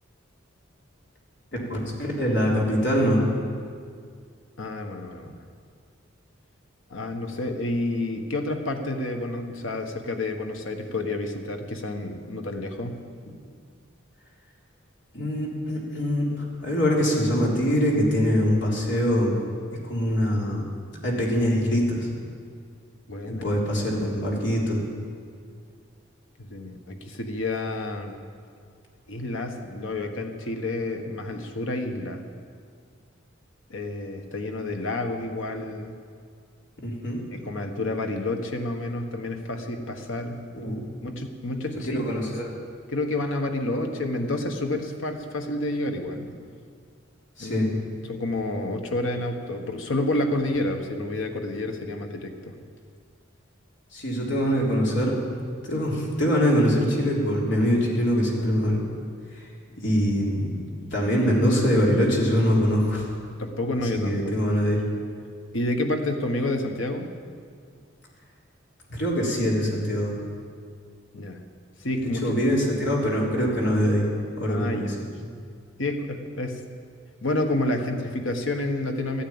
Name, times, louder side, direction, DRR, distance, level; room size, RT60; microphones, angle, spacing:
voice 1, 1.7-3.2 15.1-19.4 19.8-20.7 21.0-22.1 23.3-24.8 36.8-37.2 40.5-40.8 41.9-42.5 47.4-47.7 53.9-55.1 55.6-58.8 59.4-59.5 59.8-60.5 60.9-63.1 63.8-64.8 68.9-70.1 72.0-74.1 74.4-74.9, equal, 60° left, -3 dB, 3.6 m, -23 dB
voice 2, 4.6-5.3 6.9-13.0 23.1-23.4 26.4-28.2 29.1-32.2 33.7-35.9 37.3-40.4 41.0-42.0 42.9-46.3 47.4-47.7 48.1-52.6 59.7-59.8 63.4-64.4 65.5-67.1 71.1-71.4 71.8-72.2 72.6-72.9 74.5-74.9 75.8-76.6 77.2-79.2, left 2 dB, 80° left, 4 dB, 1.4 m, -29 dB
14.0 x 9.9 x 8.8 m, 2.2 s
head